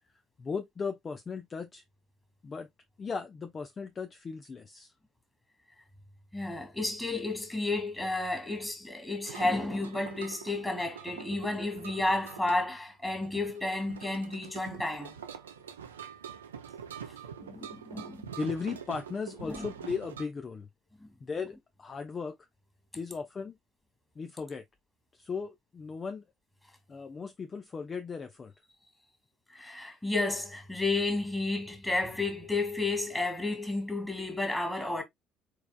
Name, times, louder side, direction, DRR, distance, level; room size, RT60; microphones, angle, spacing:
voice 1, 0.4-1.8 2.4-2.7 3.0-4.9 18.4-20.7 21.2-22.4 23.0-23.6 24.2-24.6 25.1-26.2 26.9-28.5, left 5 dB, 30° left, 0.7 m, -37 dB
voice 2, 6.3-15.2 17.4-18.3 19.4-19.7 21.0-21.1 29.5-35.0, left 2 dB, 10° left, 2.5 m, -32 dB
sound 1, 9.2-20.3, right 8 dB, 80° right, 0.6 m, -45 dB
4.7 x 4.7 x 2.3 m
figure-of-eight pair, 55°, 0 cm